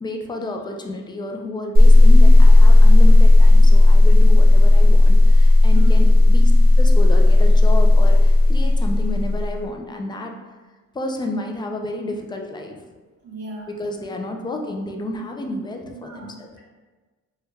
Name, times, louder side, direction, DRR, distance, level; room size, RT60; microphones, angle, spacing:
voice 1, 0.0-6.5 6.8-10.3 10.9-12.8 13.7-16.5, left 1 dB, 15° left, 3 dB, 0.4 m, -31 dB
sound 1, 1.7-9.6, left 2 dB, 30° right, 0.9 m, -11 dB
voice 2, 13.2-13.7 15.9-16.3, right 2 dB, 60° right, -5 dB, 1.4 m, -36 dB
3.3 x 2.3 x 3.1 m, 1.3 s
cardioid pair, 90°, 30 cm